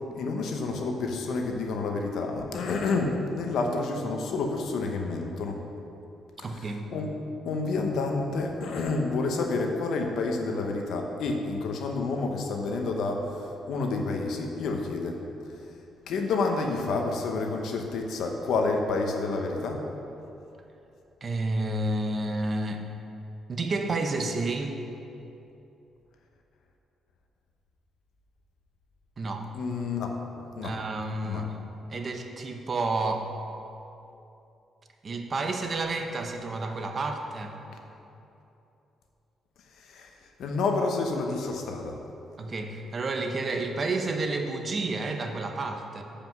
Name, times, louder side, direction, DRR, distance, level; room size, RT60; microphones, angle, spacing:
voice 1, 0.1-5.6 6.5-7.1 7.4-15.2 16.1-19.9 29.5-30.7 31.2-31.4 39.7-42.0, left 3 dB, 75° left, 3 dB, 0.9 m, -29 dB
voice 2, 6.4-6.9 21.2-22.9 23.5-24.8 29.2-29.5 30.6-31.6 31.9-33.3 35.0-37.6 42.4-46.0, right 2 dB, 40° right, 4 dB, 0.7 m, -30 dB
7.7 x 5.1 x 5.9 m, 2.8 s
cardioid pair, 90°, 0 cm